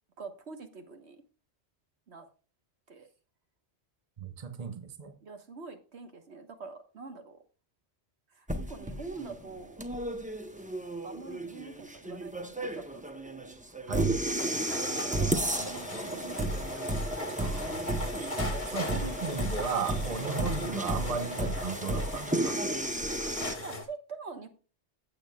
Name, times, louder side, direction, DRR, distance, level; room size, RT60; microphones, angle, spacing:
voice 1, 0.2-1.2 2.1-2.3 2.9-3.1 5.2-7.4 8.3-9.8 11.0-13.8 14.3-17.3 17.5-18.1 18.5-18.8 23.6-24.5, right 4 dB, 75° right, 1.6 m, -45 dB
voice 2, 4.2-5.1 13.9-14.1 17.4-18.0 18.5-22.6, right 5 dB, 35° right, 1.0 m, -36 dB
sound 1, 8.5-23.5, right 1 dB, 10° right, 0.8 m, -33 dB
sound 2, 14.4-23.8, left 2 dB, 45° left, 1.6 m, -40 dB
15.5 x 7.7 x 2.3 m
omnidirectional pair, 1.1 m